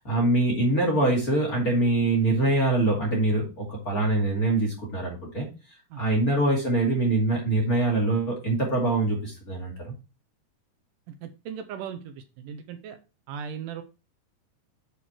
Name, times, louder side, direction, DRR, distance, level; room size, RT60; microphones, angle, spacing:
voice 1, 0.0-5.5 6.0-9.9, right 2 dB, 30° left, -2 dB, 2.1 m, -24 dB
voice 2, 11.1-13.0 13.3-13.8, right 7 dB, 80° right, 8 dB, 1.9 m, -38 dB
8.4 x 4.3 x 4.5 m, 0.30 s
omnidirectional pair, 4.7 m